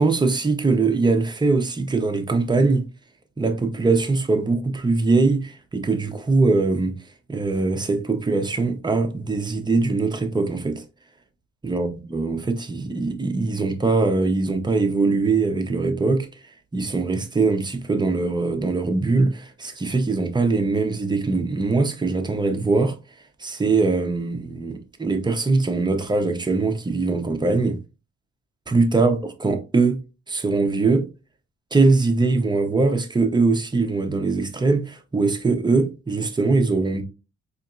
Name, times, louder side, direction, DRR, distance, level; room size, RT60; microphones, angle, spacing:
voice 1, 0.0-2.9 3.4-6.9 7.3-10.8 11.6-16.3 16.7-23.0 23.4-27.8 28.7-30.0 30.3-31.1 31.7-37.0, right 3 dB, 15° right, 0.7 m, -22 dB
4.3 x 2.9 x 2.5 m
cardioid pair, 90°, 30 cm